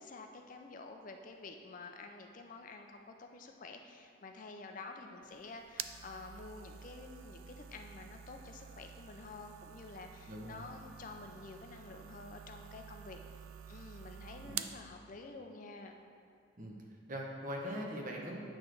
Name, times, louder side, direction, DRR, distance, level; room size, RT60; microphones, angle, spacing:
voice 1, 0.0-13.2 13.7-16.0, left 3 dB, 40° left, 4 dB, 0.4 m, -49 dB
sound 1, 5.2-14.8, right 9 dB, 90° right, 0.3 m, -48 dB
voice 2, 10.3-10.7 14.4-14.6 16.6-16.8 17.1-18.4, equal, 40° right, -1 dB, 0.9 m, -41 dB
8.8 x 3.2 x 6.1 m, 2.4 s
head